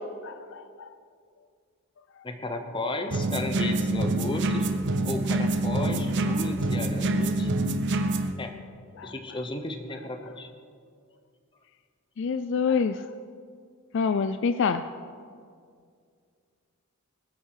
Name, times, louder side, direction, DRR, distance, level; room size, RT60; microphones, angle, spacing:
voice 1, 0.2-0.9 9.0-9.1 12.2-13.1 13.9-14.8, left 5 dB, 55° left, 11 dB, 0.4 m, -26 dB
voice 2, 2.2-4.7 5.0-7.5 8.4-8.6 9.0-10.5, left 2 dB, 20° left, 6 dB, 0.9 m, -34 dB
sound 1, 3.1-8.3, right 2 dB, 55° right, 0.8 m, -26 dB
20.0 x 8.2 x 4.8 m, 2.2 s
head